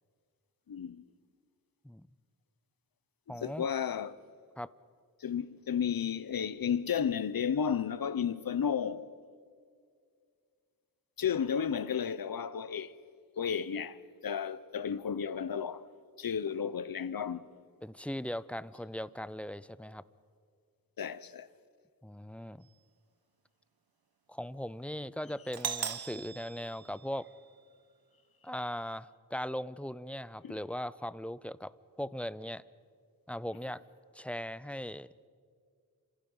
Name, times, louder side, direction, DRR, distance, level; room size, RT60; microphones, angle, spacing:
voice 1, 0.7-1.1 3.3-4.2 5.2-9.2 11.2-12.9 13.4-15.9 16.2-17.5 21.0-21.5 30.4-30.6, left 7 dB, 70° left, 0.9 m, -33 dB
voice 2, 3.3-3.7 4.6-4.7 17.8-20.0 22.0-22.7 24.3-27.3 28.4-32.6 33.3-33.8 34.1-35.1, equal, 5° left, 0.5 m, -39 dB
Doorbell, 25.5-27.5, right 7 dB, 90° right, 1.1 m, -39 dB
29.5 x 26.0 x 5.6 m
wide cardioid pair, 110°, 36 cm